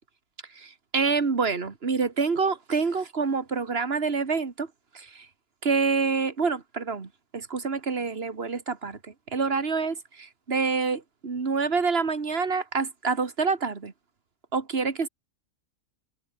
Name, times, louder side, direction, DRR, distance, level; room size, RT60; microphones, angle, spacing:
voice 1, 0.6-4.7 4.9-5.3 5.6-9.0 9.3-13.9 14.5-15.1, right 4 dB, 50° right, 2.2 m, -27 dB
omnidirectional pair, 1.4 m